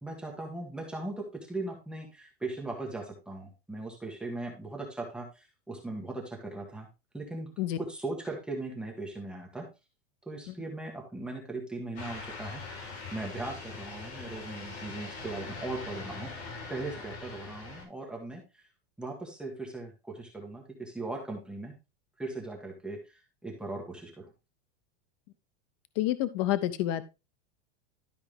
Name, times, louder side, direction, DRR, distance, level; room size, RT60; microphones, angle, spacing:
voice 1, 0.0-6.9 7.1-7.5 7.8-9.7 10.3-12.8 13.1-16.3 16.7-18.6 19.0-21.7 22.2-23.0 23.4-24.3, right 2 dB, 5° right, -1 dB, 1.2 m, -38 dB
sound 1, 12.0-17.8, left 4 dB, 75° left, 4.6 m, -42 dB
voice 2, 26.0-27.0, left 13 dB, 30° left, 13 dB, 0.5 m, -28 dB
12.0 x 4.7 x 3.3 m, 0.26 s
supercardioid pair, 180°, 32 cm